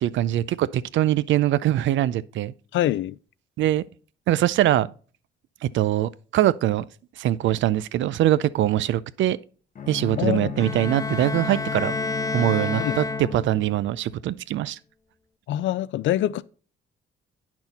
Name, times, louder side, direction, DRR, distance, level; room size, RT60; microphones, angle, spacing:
voice 1, 0.0-2.5 3.6-3.8 4.3-4.9 5.6-6.9 7.2-9.4 9.9-11.9 12.3-14.8, right 13 dB, 70° right, 0.5 m, -22 dB
voice 2, 2.7-3.2 10.2-10.5 12.8-13.0 15.5-16.4, left 13 dB, 75° left, 0.4 m, -24 dB
Bowed string instrument, 9.7-13.9, left 6 dB, 40° left, 0.9 m, -34 dB
Bowed string instrument 2, 10.6-13.7, left 3 dB, 15° left, 0.4 m, -30 dB
8.9 x 6.0 x 4.1 m
cardioid pair, 90°, 20 cm